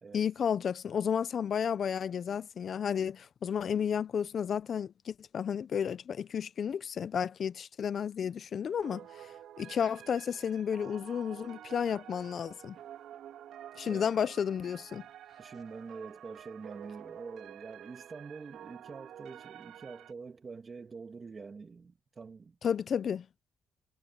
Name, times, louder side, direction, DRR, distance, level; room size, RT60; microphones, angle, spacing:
voice 1, 0.1-9.3 9.6-12.8 13.8-15.0 22.6-23.3, left 7 dB, 55° left, 0.7 m, -32 dB
sound 1, 8.8-20.1, right 10 dB, 75° right, 3.1 m, -50 dB
voice 2, 13.9-14.2 15.4-22.6, right 4 dB, 35° right, 2.5 m, -46 dB
cardioid pair, 90°, 0 cm